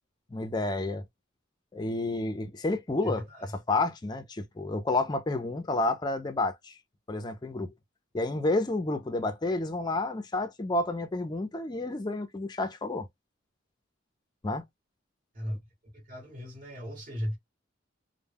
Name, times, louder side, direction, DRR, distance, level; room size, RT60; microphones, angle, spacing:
voice 1, 0.3-1.0 1.7-6.8 7.1-7.7 8.1-13.1 14.4-14.6, left 2 dB, 20° left, 0.4 m, -30 dB
voice 2, 3.0-3.5 15.3-15.6 15.9-17.4, equal, 45° right, 1.1 m, -36 dB
2.2 x 2.1 x 3.3 m
head